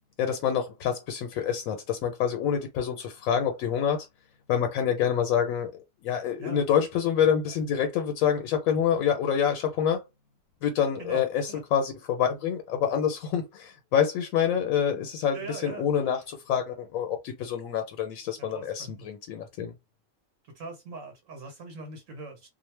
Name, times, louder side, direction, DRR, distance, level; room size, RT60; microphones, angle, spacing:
voice 1, 0.2-4.1 4.5-5.7 6.0-10.0 10.6-19.7, left 8 dB, 90° left, 1.0 m, -27 dB
voice 2, 11.0-11.6 15.3-16.1 18.4-19.1 20.4-22.5, right 3 dB, 75° right, 1.2 m, -41 dB
2.4 x 2.1 x 3.1 m
omnidirectional pair, 1.4 m